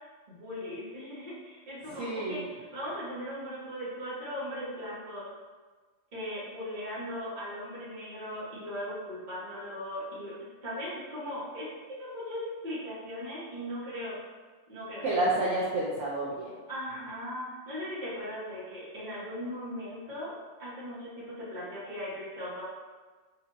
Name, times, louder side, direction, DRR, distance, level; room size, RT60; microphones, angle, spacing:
voice 1, 0.3-5.3 6.1-10.3 10.6-14.3 14.7-15.0 16.7-22.7, equal, 35° right, -8 dB, 1.2 m, -38 dB
voice 2, 1.9-2.4 15.0-16.5, right 2 dB, 65° right, -7 dB, 0.9 m, -29 dB
4.3 x 2.6 x 2.6 m, 1.4 s
omnidirectional pair, 1.4 m